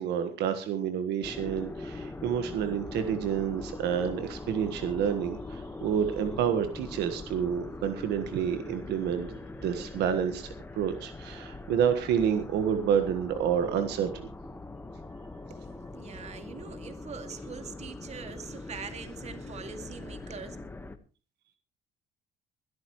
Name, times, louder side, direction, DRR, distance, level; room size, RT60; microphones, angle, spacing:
voice 1, 0.0-9.3 9.6-14.2, right 8 dB, 80° right, 9 dB, 1.5 m, -29 dB
sound 1, 1.2-21.0, left 2 dB, 10° left, 1.3 m, -42 dB
voice 2, 15.9-20.6, right 6 dB, 40° right, 8 dB, 2.3 m, -43 dB
21.0 x 13.0 x 3.1 m, 0.33 s
cardioid pair, 110°, 17 cm